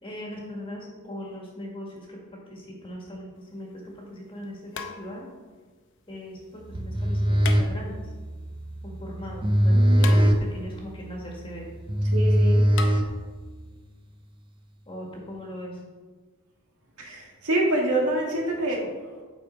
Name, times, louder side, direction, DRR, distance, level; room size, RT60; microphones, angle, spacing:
voice 1, 0.0-5.3 6.1-6.4 6.8-8.1 8.8-11.7 14.9-15.8, equal, 25° left, -1 dB, 1.7 m, -39 dB
sound 1, 3.4-3.5 4.7-5.5 7.4-8.2 10.0-10.8 12.8-12.9, left 5 dB, 55° left, 0.7 m, -36 dB
sound 2, 6.7-13.6, equal, 20° right, 0.6 m, -22 dB
voice 2, 9.7-10.2 12.1-12.6 17.0-19.2, right 1 dB, 85° right, -1 dB, 1.8 m, -27 dB
8.1 x 5.2 x 4.4 m, 1.4 s
head